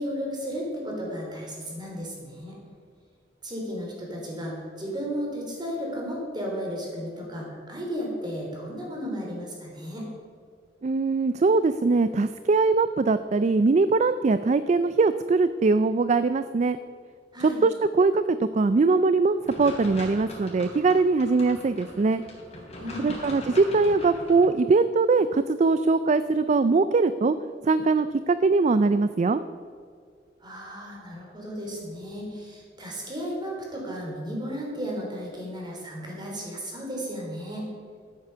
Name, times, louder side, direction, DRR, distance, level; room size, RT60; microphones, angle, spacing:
voice 1, 0.0-2.6 3.4-10.1 17.3-17.6 22.8-23.1 30.4-37.7, equal, 25° right, -2 dB, 3.5 m, -34 dB
voice 2, 10.8-16.8 17.4-22.2 23.0-27.4 27.6-29.4, right 3 dB, 40° right, 12 dB, 0.4 m, -22 dB
sound 1, 19.5-24.5, left 1 dB, 35° left, 3.6 m, -41 dB
13.0 x 8.5 x 6.8 m, 2.1 s
head